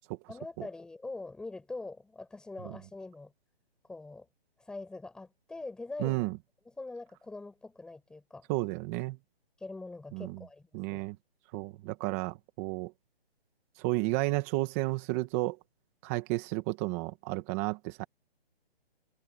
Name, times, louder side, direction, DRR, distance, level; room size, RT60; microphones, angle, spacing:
voice 1, 0.3-3.3 3.8-4.3 4.6-6.2 6.7-8.5 9.6-11.0, left 3 dB, ahead, 7.6 m, -43 dB
voice 2, 6.0-6.3 8.5-9.2 10.1-10.4 10.7-11.2 11.5-12.9 13.8-15.6 16.0-18.1, right 20 dB, 15° right, 1.8 m, -32 dB
hypercardioid pair, 170°, 31 cm